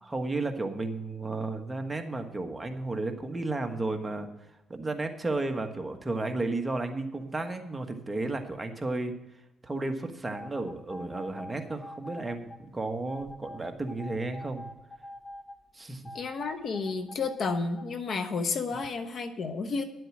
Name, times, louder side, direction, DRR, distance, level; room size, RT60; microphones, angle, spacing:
voice 1, 0.0-4.3 4.7-9.1 9.6-14.7 15.7-16.1, right 2 dB, 15° right, 5 dB, 1.4 m, -33 dB
sound 1, 10.3-12.6 13.1-15.6 16.1-17.8, left 1 dB, 5° left, 1.0 m, -44 dB
voice 2, 16.1-19.8, left 4 dB, 55° left, 8 dB, 1.1 m, -31 dB
11.0 x 7.9 x 6.1 m, 0.97 s
cardioid pair, 90°, 0 cm